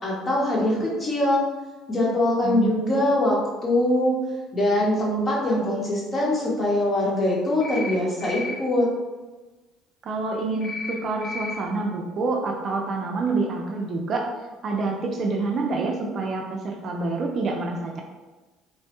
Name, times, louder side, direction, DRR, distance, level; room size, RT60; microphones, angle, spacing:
voice 1, 0.0-1.4 1.9-4.2 4.5-8.9, left 1 dB, 30° left, -4 dB, 0.9 m, -23 dB
sound 1, 7.6-7.9 8.2-8.5 10.6-10.9 11.2-11.5, left 3 dB, ahead, 1.0 m, -33 dB
voice 2, 10.0-14.3 14.6-18.0, right 3 dB, 45° right, 1 dB, 0.4 m, -27 dB
3.1 x 2.2 x 2.9 m, 1.2 s
cardioid pair, 115°, 0 cm